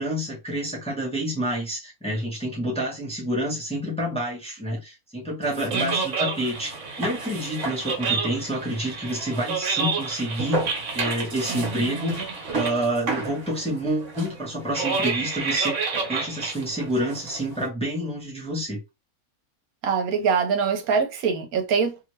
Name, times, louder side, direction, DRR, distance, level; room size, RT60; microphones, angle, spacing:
voice 1, 0.0-10.7 10.9-12.2 12.5-15.8 16.1-18.8, equal, 5° left, 0.9 m, -28 dB
sound 1, 5.4-17.7, right 4 dB, 55° right, 1.3 m, -29 dB
voice 2, 5.7-6.0 11.5-12.3 19.8-22.0, right 6 dB, 80° right, 1.2 m, -25 dB
2.8 x 2.6 x 3.1 m
omnidirectional pair, 1.5 m